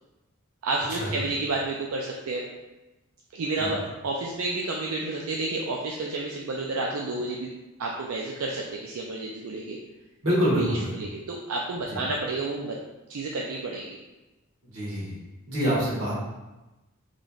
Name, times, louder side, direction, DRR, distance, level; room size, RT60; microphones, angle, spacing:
voice 1, 0.6-2.4 3.3-7.5 7.8-9.8 10.5-12.8 13.1-14.0, right 2 dB, 85° right, -2 dB, 0.4 m, -30 dB
voice 2, 10.2-10.9 11.9-12.0 14.6-15.2 15.5-16.2, equal, 65° right, -6 dB, 1.4 m, -26 dB
4.0 x 3.2 x 2.3 m, 1.1 s
head